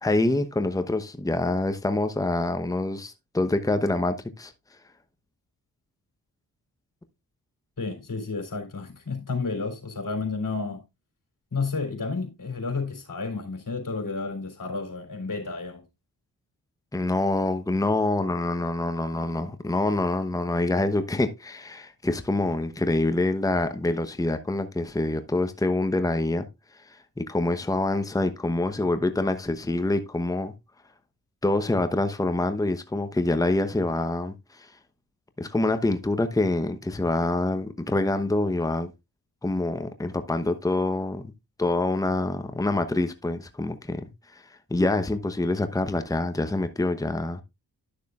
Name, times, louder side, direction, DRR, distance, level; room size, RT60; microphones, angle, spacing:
voice 1, 0.0-4.5 16.9-26.5 27.2-30.5 31.4-34.7 35.4-38.9 39.4-41.3 41.6-44.4 44.7-47.4, left 2 dB, 10° left, 1.0 m, -26 dB
voice 2, 7.8-10.8 11.5-15.8, left 4 dB, 50° left, 3.6 m, -31 dB
11.5 x 6.5 x 2.4 m
supercardioid pair, 45°, 41 cm